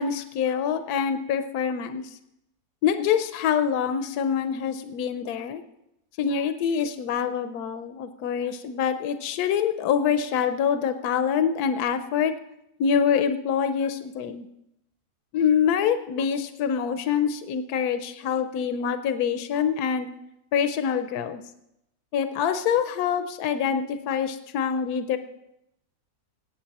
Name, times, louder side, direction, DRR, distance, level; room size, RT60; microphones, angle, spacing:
voice 1, 0.0-2.2 2.8-5.6 6.2-12.3 12.8-14.5 15.3-20.1 20.5-21.4 22.1-25.2, left 7 dB, 80° left, 9 dB, 1.2 m, -25 dB
17.5 x 8.3 x 4.1 m, 0.85 s
omnidirectional pair, 1.6 m